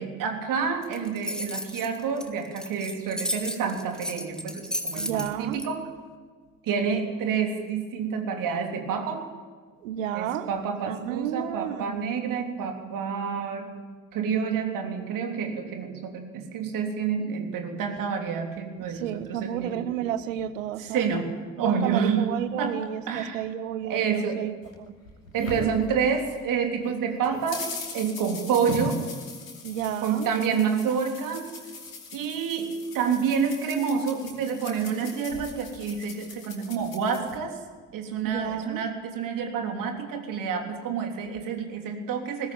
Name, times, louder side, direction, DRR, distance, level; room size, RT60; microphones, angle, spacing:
voice 1, 0.0-5.9 6.6-9.3 10.1-13.7 14.1-19.8 20.8-21.3 21.6-22.8 23.1-23.4 23.8-24.4 25.3-27.7 27.9-29.0 30.0-31.5 32.1-37.6 37.9-42.5, right 6 dB, 55° right, 4 dB, 3.4 m, -28 dB
sound 1, 0.8-5.7, equal, ahead, 2.5 m, -33 dB
voice 2, 4.9-5.6 9.8-10.5 10.9-12.1 18.9-21.1 21.6-24.5 29.6-30.3 38.2-38.8, right 10 dB, 70° right, 14 dB, 1.1 m, -31 dB
sound 2, 24.6-26.5 26.8-37.4, left 2 dB, 80° left, 2.8 m, -40 dB
20.5 x 17.0 x 9.0 m, 1.5 s
figure-of-eight pair, 50°, 40 cm